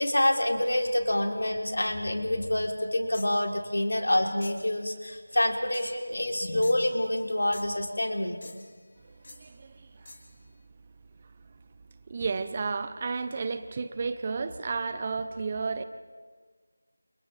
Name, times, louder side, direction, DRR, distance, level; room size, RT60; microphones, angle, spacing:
voice 1, 0.0-8.6, left 1 dB, 85° left, 2 dB, 3.8 m, -27 dB
sound 1, 3.1-3.4 4.4-4.7 5.7-6.0 6.6-7.3 7.5-7.9 8.4-8.8 9.2-9.5 10.1-10.3, left 2 dB, 50° left, 3.3 m, -48 dB
voice 2, 9.1-10.1 12.1-15.8, right 4 dB, 25° right, 11 dB, 0.9 m, -33 dB
30.0 x 29.0 x 3.5 m, 1.5 s
figure-of-eight pair, 175°, 0 cm